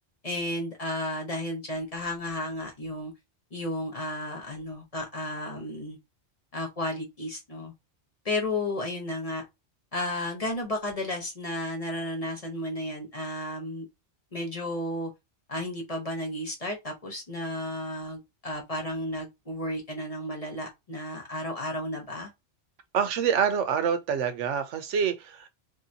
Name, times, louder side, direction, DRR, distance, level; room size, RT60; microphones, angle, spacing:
voice 1, 0.2-3.1 3.5-6.0 6.5-7.7 8.2-9.4 9.9-13.9 14.3-15.1 15.5-22.3, left 1 dB, 35° left, 1.0 m, -33 dB
voice 2, 22.9-25.5, right 7 dB, 85° right, 1.0 m, -26 dB
3.1 x 2.7 x 2.7 m
omnidirectional pair, 1.2 m